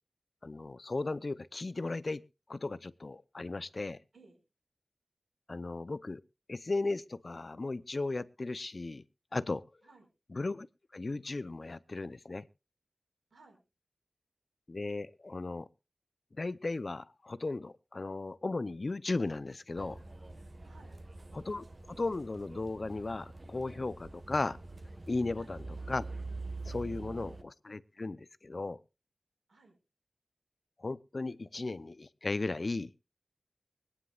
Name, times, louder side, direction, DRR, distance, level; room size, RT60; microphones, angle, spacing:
voice 1, 0.4-2.2 2.5-4.0 5.5-6.2 6.5-9.0 9.3-9.6 10.3-10.7 10.9-12.5 14.7-15.7 16.4-20.0 21.3-24.6 25.1-26.1 26.6-28.8 30.8-32.9, left 3 dB, 55° left, 17 dB, 0.6 m, -36 dB
voice 2, 13.3-13.6 20.6-21.0 25.4-25.6 26.9-27.1 29.5-29.8, right 3 dB, 90° right, 3 dB, 5.0 m, -59 dB
sound 1, 19.8-27.4, right 3 dB, 45° right, 1.5 m, -45 dB
24.0 x 9.7 x 2.5 m, 0.30 s
wide cardioid pair, 60°, 0 cm